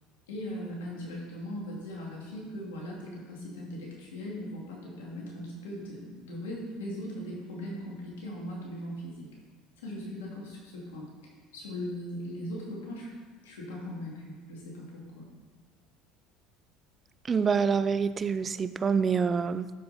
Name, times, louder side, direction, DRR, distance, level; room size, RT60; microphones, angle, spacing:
voice 1, 0.3-9.3 9.8-11.1 11.5-13.1 13.4-15.3, equal, 90° left, -3 dB, 2.6 m, -39 dB
voice 2, 17.3-19.7, right 6 dB, 30° right, 14 dB, 0.4 m, -26 dB
12.5 x 5.4 x 4.2 m, 1.4 s
supercardioid pair, 90°, 0 cm